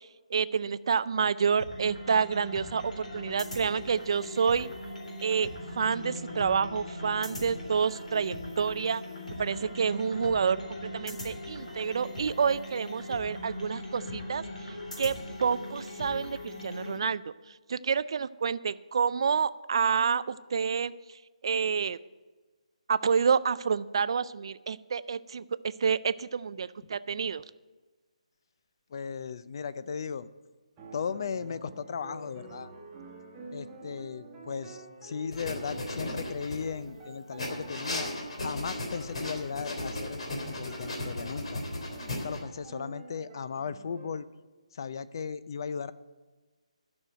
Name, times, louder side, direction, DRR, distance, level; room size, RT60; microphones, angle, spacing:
voice 1, 0.3-4.7 5.2-5.5 5.8-9.0 9.4-17.3 17.7-20.9 21.4-22.0 22.9-27.4, right 6 dB, 45° right, 16 dB, 0.4 m, -28 dB
sound 1, 1.6-17.0, left 1 dB, 90° left, 3.7 m, -40 dB
voice 2, 28.9-30.3 30.9-32.7 33.5-38.1 38.4-41.6 42.1-44.3 44.7-45.9, left 6 dB, 35° left, 15 dB, 0.4 m, -36 dB
sound 2, 30.8-44.1, right 3 dB, 10° right, 1.3 m, -48 dB
sound 3, 35.3-36.9 37.4-42.4, left 1 dB, 55° left, 3.2 m, -36 dB
12.0 x 6.3 x 9.1 m, 1.3 s
hypercardioid pair, 170°, 4 cm